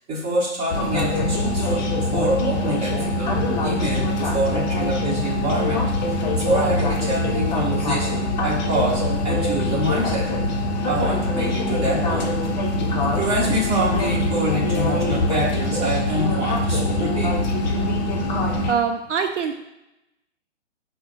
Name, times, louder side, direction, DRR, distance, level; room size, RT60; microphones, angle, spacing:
voice 1, 0.1-10.3 10.8-12.4 12.7-17.3, right 1 dB, 15° right, -6 dB, 1.2 m, -26 dB
sound 1, 0.7-18.7, left 1 dB, 35° left, 0.6 m, -23 dB
voice 2, 18.7-19.5, right 6 dB, 75° right, 5 dB, 0.5 m, -23 dB
5.4 x 2.1 x 3.9 m, 0.91 s
figure-of-eight pair, 130°, 36 cm